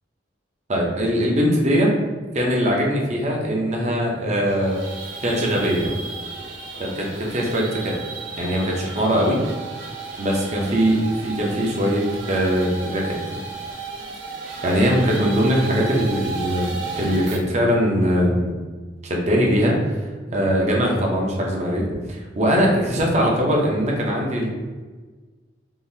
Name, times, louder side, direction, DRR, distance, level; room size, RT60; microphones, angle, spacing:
voice 1, 0.7-1.9 2.3-4.8 5.2-5.9 6.8-8.0 8.4-9.4 10.2-13.2 14.6-18.5 19.0-20.0 20.3-24.5, equal, 35° right, -2 dB, 0.7 m, -21 dB
sound 1, 4.4-17.4, right 4 dB, 80° right, 0.7 m, -34 dB
3.7 x 2.6 x 2.7 m, 1.4 s
head